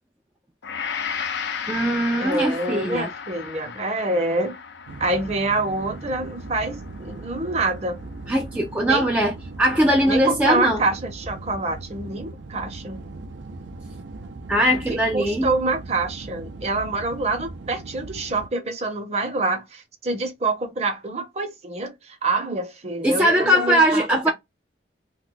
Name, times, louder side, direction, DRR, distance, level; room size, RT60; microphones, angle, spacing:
Gong, 0.6-8.9 9.4-9.6, left 7 dB, 75° left, 0.5 m, -35 dB
voice 1, 1.7-3.1 8.3-9.3 9.6-10.8 14.5-15.5 23.0-24.3, equal, 10° right, 0.3 m, -20 dB
voice 2, 2.2-4.5 5.0-8.0 8.8-9.1 10.1-13.0 14.7-24.3, right 2 dB, 35° right, 0.8 m, -26 dB
sound 1, 4.9-18.5, right 2 dB, 90° right, 0.5 m, -38 dB
2.6 x 2.2 x 3.8 m
head